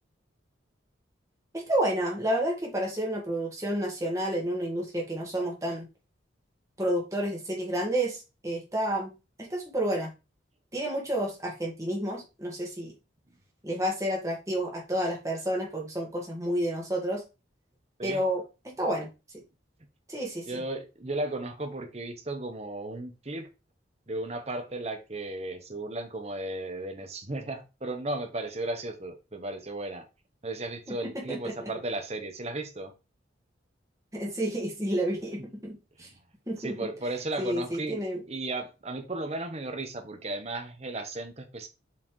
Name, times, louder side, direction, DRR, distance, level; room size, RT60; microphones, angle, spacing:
voice 1, 1.5-5.9 6.8-10.1 10.7-12.9 13.6-17.2 18.0-19.1 20.1-20.5 30.9-31.7 34.1-36.1 36.5-36.9 37.4-38.2, right 1 dB, 15° right, -1 dB, 1.8 m, -30 dB
voice 2, 20.5-23.5 24.1-30.1 30.4-32.9 36.0-36.1 36.6-41.7, right 2 dB, 35° right, 6 dB, 1.0 m, -35 dB
7.2 x 4.3 x 3.2 m, 0.29 s
head